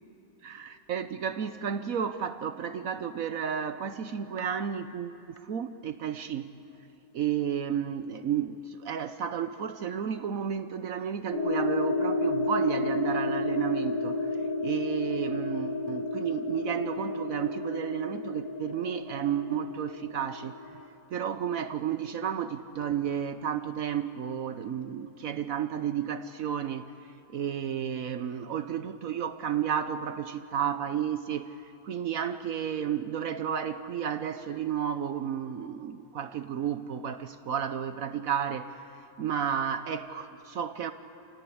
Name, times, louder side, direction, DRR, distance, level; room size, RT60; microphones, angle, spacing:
voice 1, 0.4-6.5 7.1-14.3 14.6-20.5 21.1-26.9 27.3-40.9, right 8 dB, 65° right, 10 dB, 1.1 m, -32 dB
sound 1, 11.3-20.8, left 2 dB, 70° left, 5.1 m, -31 dB
29.5 x 17.5 x 8.6 m, 2.8 s
omnidirectional pair, 1.7 m